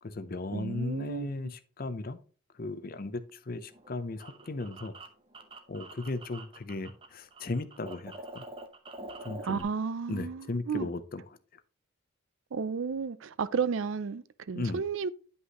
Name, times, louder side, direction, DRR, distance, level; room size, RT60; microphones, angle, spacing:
voice 1, 0.0-2.2 2.5-4.9 5.7-8.4 9.2-9.7 10.1-11.2 14.5-14.8, left 2 dB, 40° left, 0.6 m, -36 dB
voice 2, 0.5-1.5 9.4-10.9 12.5-15.1, right 6 dB, 65° right, 0.4 m, -33 dB
sound 1, 3.7-7.1 7.3-9.6, right 2 dB, 25° right, 0.7 m, -46 dB
9.7 x 5.5 x 2.9 m
head